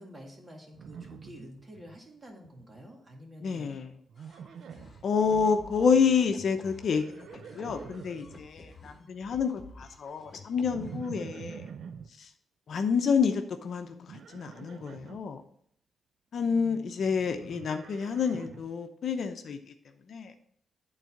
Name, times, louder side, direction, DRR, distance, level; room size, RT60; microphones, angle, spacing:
voice 1, 0.0-3.7 8.9-9.1 16.3-16.9, equal, 25° right, 2.0 m, -49 dB
Livestock farm animals working animals, 0.7-2.0 2.3-2.8 4.1-5.1 6.7-8.4 10.7-12.1 14.1-15.2 17.0-18.7, right 7 dB, 75° right, 0.5 m, -46 dB
voice 2, 3.4-3.9 5.0-7.3 7.5-11.7 12.2-12.3 12.7-15.4 16.3-19.7 20.1-20.3, left 6 dB, 65° left, 0.8 m, -28 dB
sound 1, 4.2-11.2, left 3 dB, 40° left, 1.4 m, -52 dB
9.1 x 4.0 x 5.9 m
cardioid pair, 85°, 0 cm